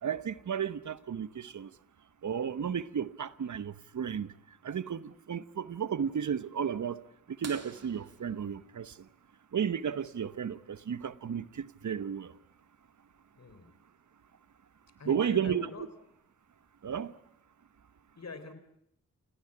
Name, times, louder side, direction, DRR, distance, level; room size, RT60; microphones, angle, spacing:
voice 1, 0.0-1.7 2.2-4.3 4.6-7.0 7.4-8.9 9.5-12.3 15.1-15.7 16.8-17.1, right 8 dB, 70° right, 1.0 m, -33 dB
sound 1, 7.4-9.9 11.8-11.9 14.1-14.2 15.9-16.2 17.0-17.1, right 4 dB, 55° right, 3.7 m, -50 dB
voice 2, 13.4-13.7 15.0-15.9 18.2-18.5, left 4 dB, 60° left, 3.9 m, -44 dB
28.5 x 18.0 x 9.9 m
cardioid pair, 65°, 30 cm